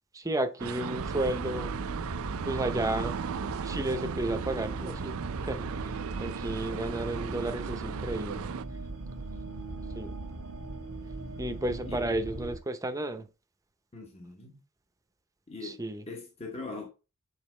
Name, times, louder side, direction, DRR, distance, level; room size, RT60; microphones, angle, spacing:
voice 1, 0.1-1.7 2.4-3.2 3.6-5.1 5.4-5.9 6.2-8.5 9.9-10.2 11.4-13.3 15.6-16.0, right 1 dB, 15° right, 0.7 m, -32 dB
sound 1, 0.6-8.6, right 7 dB, 65° right, 0.4 m, -37 dB
sound 2, 1.0-12.6, right 2 dB, 90° right, 1.2 m, -39 dB
voice 2, 13.9-14.6 15.5-16.9, left 3 dB, 30° left, 1.0 m, -41 dB
7.3 x 4.0 x 3.2 m
head